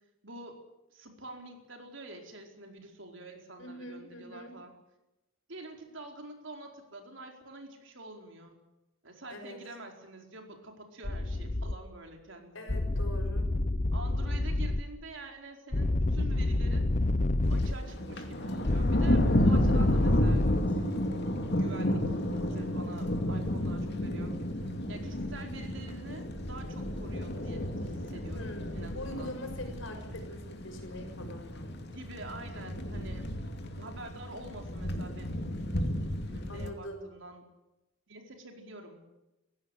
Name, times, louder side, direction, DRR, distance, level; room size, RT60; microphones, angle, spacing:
voice 1, 0.2-0.6 0.9-4.7 5.5-8.6 9.0-12.8 13.9-16.9 17.5-20.4 21.6-24.3 24.9-29.3 31.9-35.3 36.3-37.4 38.1-39.0, right 2 dB, 65° right, 3 dB, 4.7 m, -47 dB
voice 2, 3.6-4.5 9.3-9.6 12.5-13.5 28.3-31.7 36.5-37.0, left 1 dB, 75° left, 5 dB, 6.1 m, -43 dB
sound 1, 11.0-11.7 12.7-14.8 15.7-17.7 18.7-20.6, left 2 dB, 40° left, 0.9 m, -28 dB
Thunder, 17.5-36.7, left 1 dB, 55° left, 2.6 m, -32 dB
sound 2, 20.7-30.5 30.8-30.9, equal, 10° left, 6.7 m, -51 dB
18.5 x 16.0 x 10.0 m, 0.94 s
head